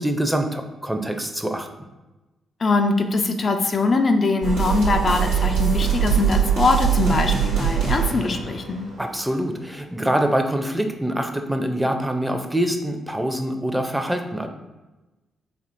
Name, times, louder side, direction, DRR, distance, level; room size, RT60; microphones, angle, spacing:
voice 1, 0.0-1.7 9.0-14.5, right 1 dB, 10° right, 5 dB, 0.5 m, -24 dB
voice 2, 2.6-8.8, left 3 dB, 50° left, 4 dB, 0.4 m, -22 dB
sound 1, 4.4-9.4, right 8 dB, 85° right, 0.9 m, -22 dB
4.3 x 2.8 x 2.6 m, 1.1 s
hypercardioid pair, 40°, 0 cm